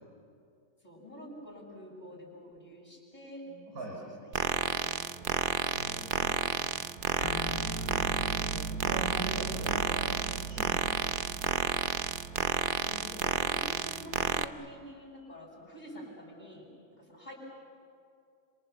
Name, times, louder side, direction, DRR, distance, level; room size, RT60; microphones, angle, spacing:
voice 1, 0.8-3.4 4.2-5.1 5.4-6.1 12.8-16.7 17.0-17.3, equal, 30° left, -2 dB, 8.0 m, -48 dB
voice 2, 3.5-4.0 5.7-6.4 7.5-11.0, right 2 dB, 80° right, -2 dB, 5.0 m, -42 dB
sound 1, 4.3-14.5, right 7 dB, 45° right, 0.7 m, -31 dB
sound 2, 7.2-14.0, right 3 dB, 70° left, 3.7 m, -40 dB
29.5 x 27.0 x 7.1 m, 2.3 s
omnidirectional pair, 1.6 m